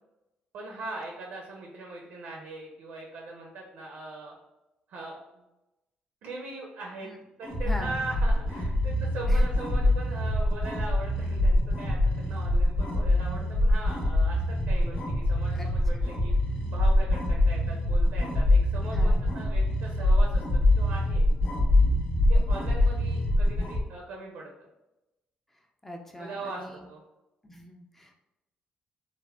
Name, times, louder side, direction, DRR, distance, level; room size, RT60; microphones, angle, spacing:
voice 1, 0.5-4.4 4.9-5.4 6.2-7.1 7.4-15.0 15.2-16.3 16.7-20.4 20.8-21.3 22.3-24.5 26.2-27.0, right 2 dB, 75° right, -1 dB, 0.5 m, -40 dB
sound 1, 7.4-23.8, left 1 dB, 45° left, 0.7 m, -24 dB
voice 2, 7.6-8.0 9.3-9.5 15.5-15.7 18.9-19.3 25.5-26.8 27.4-28.1, equal, 10° left, 2 dB, 0.3 m, -42 dB
3.3 x 2.1 x 2.2 m, 0.95 s
cardioid pair, 130°, 3 cm